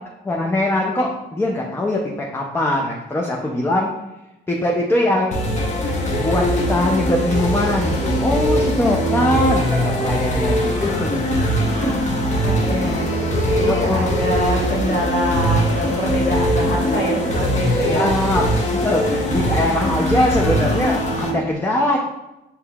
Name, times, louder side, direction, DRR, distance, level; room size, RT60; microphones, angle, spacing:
voice 1, 0.2-3.9 4.5-5.4 6.2-11.4 11.7-12.4 13.7-14.1 17.9-22.0, left 1 dB, 10° left, -1 dB, 0.5 m, -22 dB
sound 1, 5.3-21.3, equal, 35° left, 0.8 m, -21 dB
voice 2, 12.4-18.1, equal, 65° left, -2 dB, 1.2 m, -25 dB
5.3 x 2.8 x 2.3 m, 0.96 s
cardioid pair, 90°, 20 cm